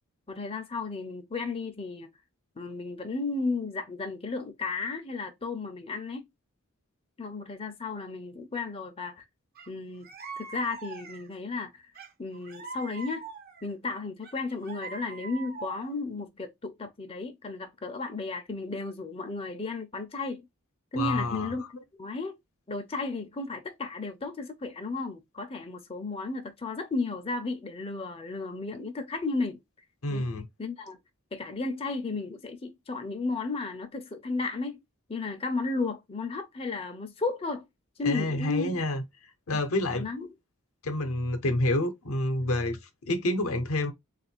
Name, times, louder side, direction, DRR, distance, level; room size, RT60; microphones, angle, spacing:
voice 1, 0.3-2.1 2.6-6.3 7.2-9.2 9.7-10.1 10.4-11.8 12.2-13.3 13.6-20.4 20.9-21.6 22.0-22.4 22.7-29.6 30.1-30.2 30.6-31.0 31.3-34.8 35.1-37.7 38.0-38.8 39.5-39.6 39.9-40.3, left 3 dB, 25° left, 0.6 m, -34 dB
sound 1, 9.6-9.7 10.0-11.4 12.0-13.7 14.2-16.0, right 4 dB, 45° right, 0.7 m, -43 dB
voice 2, 20.9-21.5 30.0-30.5 38.0-39.0 39.5-40.1 40.8-43.9, left 1 dB, 70° left, 0.8 m, -28 dB
3.6 x 2.5 x 4.3 m
head